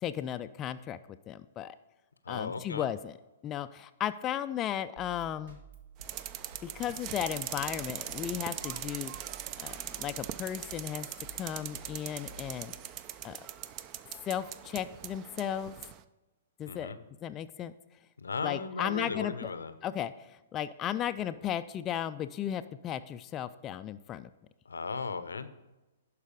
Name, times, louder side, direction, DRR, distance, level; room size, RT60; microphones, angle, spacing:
voice 1, 0.0-1.0 1.3-1.8 2.3-3.1 3.4-5.6 6.6-9.1 9.6-12.7 13.2-13.4 14.2-15.8 16.6-16.9 17.2-17.7 18.4-19.5 19.8-24.3, left 10 dB, 25° left, 10 dB, 0.3 m, -35 dB
voice 2, 2.2-2.9 16.7-17.0 18.2-19.7 24.6-25.5, left 4 dB, 80° left, 12 dB, 0.6 m, -36 dB
sound 1, 5.0-13.1, right 4 dB, 65° right, 1.6 m, -53 dB
sound 2, 6.0-16.0, right 11 dB, 35° right, 0.5 m, -41 dB
11.5 x 4.8 x 5.0 m, 1.0 s
figure-of-eight pair, 120°, 0 cm